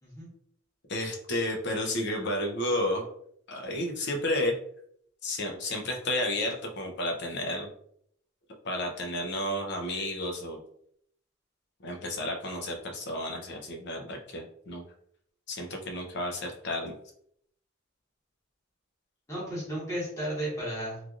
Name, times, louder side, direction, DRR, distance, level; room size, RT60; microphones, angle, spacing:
voice 1, 0.9-3.1 3.5-4.6 5.2-7.7 8.6-10.6 11.8-14.8 15.5-17.0, left 1 dB, 55° left, 2 dB, 0.6 m, -31 dB
voice 2, 19.3-21.0, right 1 dB, 15° left, -8 dB, 1.2 m, -34 dB
3.1 x 2.5 x 2.4 m, 0.68 s
head